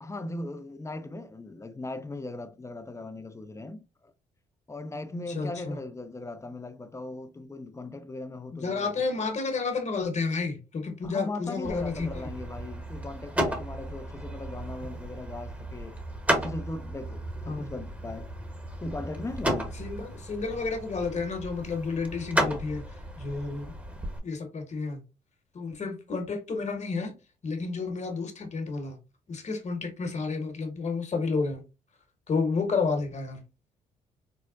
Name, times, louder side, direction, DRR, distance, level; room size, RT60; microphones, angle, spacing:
voice 1, 0.0-4.1 4.7-9.2 11.0-16.0 16.3-18.3 18.8-19.8, left 2 dB, 15° left, 0.5 m, -38 dB
voice 2, 5.3-5.8 8.5-12.3 17.5-17.7 19.8-22.8 23.2-23.7 24.2-25.0 25.5-27.1 27.4-29.0 29.3-31.6 32.3-33.4, left 4 dB, 40° left, 1.2 m, -31 dB
sound 1, 11.6-24.2, right 1 dB, 10° right, 0.9 m, -34 dB
4.5 x 2.1 x 2.4 m
supercardioid pair, 60°, 18 cm